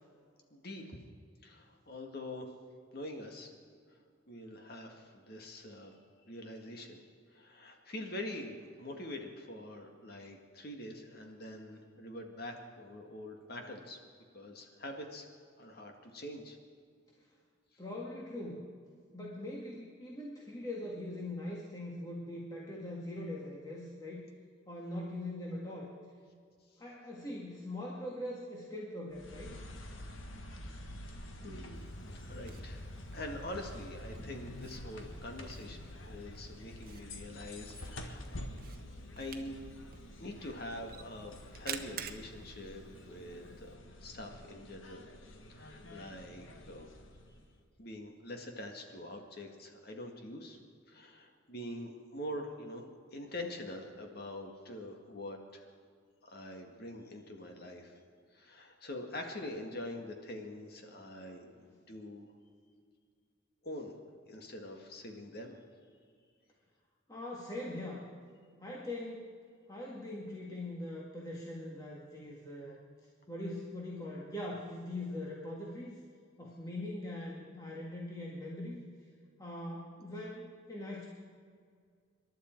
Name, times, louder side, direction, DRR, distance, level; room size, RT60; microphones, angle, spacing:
voice 1, 0.5-1.0 1.4-2.5 2.9-3.5 4.3-6.0 6.3-7.0 7.3-14.0 14.3-15.3 15.6-16.6 30.9-31.1 31.4-32.0 32.3-32.8 33.1-38.5 39.1-39.6 40.2-43.7 44.0-45.0 45.5-46.9 47.8-50.6 50.9-52.9 53.1-55.7 56.2-57.9 58.3-61.5 61.9-62.3 63.6-63.9 64.3-65.6, left 1 dB, 50° left, 3 dB, 1.9 m, -44 dB
voice 2, 17.8-18.7 19.1-24.2 24.7-25.9 26.8-29.5 61.6-61.7 67.1-68.0 68.6-69.4 69.7-72.8 73.3-76.0 76.4-78.8 79.4-81.1, left 1 dB, 20° left, -4 dB, 1.8 m, -42 dB
sound 1, 29.1-47.6, left 1 dB, 80° left, 1.6 m, -48 dB
Camera, 31.7-43.7, right 8 dB, 50° right, 1.0 m, -51 dB
27.0 x 11.5 x 4.6 m, 2.1 s
head